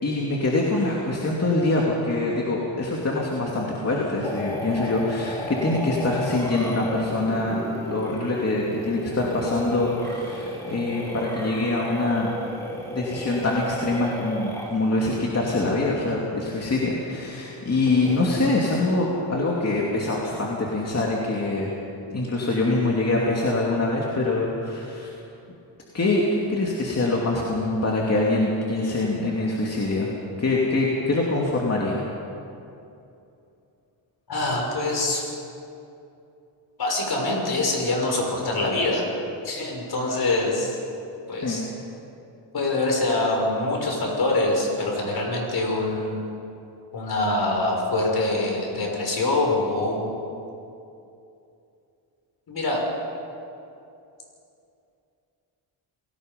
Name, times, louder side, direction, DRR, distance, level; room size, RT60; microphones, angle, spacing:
voice 1, 0.0-7.6 7.8-12.3 12.9-21.7 22.1-25.1 25.9-30.1 30.4-32.0 41.4-41.6, left 2 dB, 30° left, -3 dB, 2.7 m, -24 dB
sound 1, 4.2-15.0 17.9-18.3, equal, 5° left, 3.8 m, -34 dB
voice 2, 34.3-35.3 36.8-39.1 39.4-40.7 41.3-41.7 42.5-46.2 46.9-50.1 52.5-52.8, left 2 dB, 50° left, 0 dB, 6.2 m, -24 dB
27.5 x 18.5 x 5.4 m, 2.7 s
cardioid pair, 105°, 47 cm